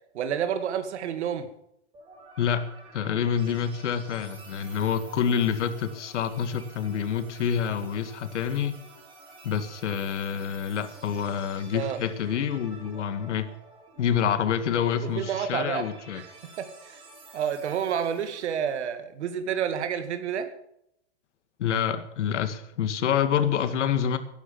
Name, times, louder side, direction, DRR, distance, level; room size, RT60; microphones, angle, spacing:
voice 1, 0.1-1.5 11.7-12.0 15.1-15.9 16.2-16.3 16.6-17.0 17.3-20.5, right 8 dB, 70° right, 9 dB, 2.4 m, -29 dB
sound 1, 1.9-18.8, right 3 dB, 15° right, 4.3 m, -50 dB
voice 2, 2.4-8.8 9.4-13.5 14.0-16.2 21.6-24.2, left 8 dB, 85° left, 10 dB, 2.2 m, -27 dB
16.0 x 11.5 x 7.0 m, 0.76 s
supercardioid pair, 175°, 35 cm